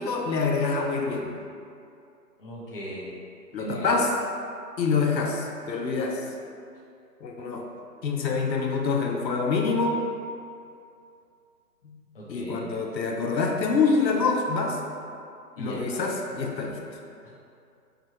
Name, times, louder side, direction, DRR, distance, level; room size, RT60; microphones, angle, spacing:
voice 1, 0.0-1.4 3.5-4.1 4.8-6.2 7.2-7.7 8.0-10.1 11.8-12.0 12.3-14.8 15.6-16.8, left 4 dB, 90° left, 1 dB, 0.6 m, -26 dB
voice 2, 2.4-3.1 3.6-4.0 12.1-12.7 15.6-16.0 17.2-17.3, right 1 dB, 35° left, -7 dB, 0.7 m, -37 dB
4.8 x 2.3 x 2.8 m, 2.4 s
figure-of-eight pair, 150°, 49 cm